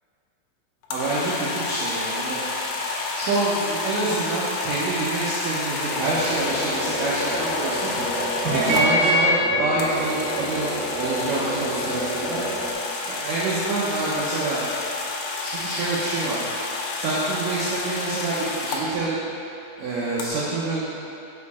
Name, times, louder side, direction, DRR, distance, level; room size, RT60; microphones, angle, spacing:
sound 1, 0.8-8.9 9.8-18.8 20.2-20.3, left 3 dB, 80° left, 2.4 m, -30 dB
voice 1, 0.9-2.4 3.1-7.9 8.5-10.7 11.0-12.4 13.1-14.7 15.4-16.4 17.0-19.2 19.8-21.0, right 2 dB, 85° right, -7 dB, 1.9 m, -27 dB
sound 2, 5.9-12.7, equal, 55° right, 1.7 m, -26 dB
6.6 x 4.8 x 4.2 m, 2.7 s
omnidirectional pair, 4.7 m